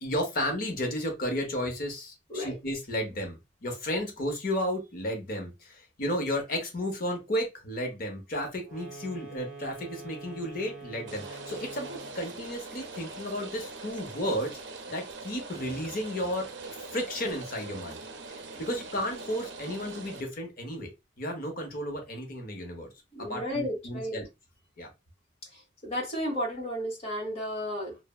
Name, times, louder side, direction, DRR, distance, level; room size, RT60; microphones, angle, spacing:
voice 1, 0.0-14.5 14.9-20.9 21.2-22.9 23.2-24.3 24.8-24.9, equal, 50° left, 0.8 m, -33 dB
sound 1, 8.6-12.2, right 3 dB, ahead, 1.5 m, -45 dB
Rain, 11.1-20.2, right 3 dB, 65° right, 0.5 m, -42 dB
voice 2, 23.1-24.2 25.5-28.0, equal, 35° left, 1.1 m, -33 dB
3.2 x 2.0 x 2.2 m
head